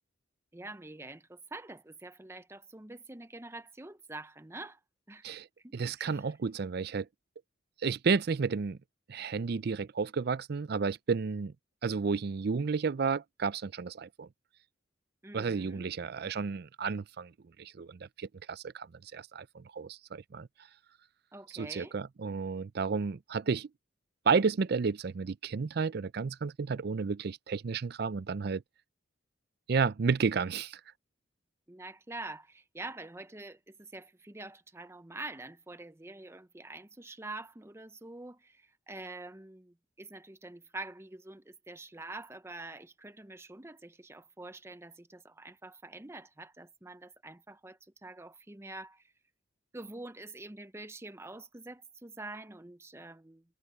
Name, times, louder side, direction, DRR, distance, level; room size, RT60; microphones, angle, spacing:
voice 1, 0.5-4.8 5.1-5.2 5.6-6.3 15.2-15.8 21.3-21.9 31.7-49.0 49.7-53.4, right 2 dB, 15° right, 0.6 m, -46 dB
voice 2, 5.7-7.1 7.8-8.8 9.1-11.5 11.8-14.3 15.3-17.3 17.6-18.9 19.1-20.5 21.5-23.7 24.3-28.6 29.7-30.8, right 5 dB, 50° right, 0.4 m, -32 dB
head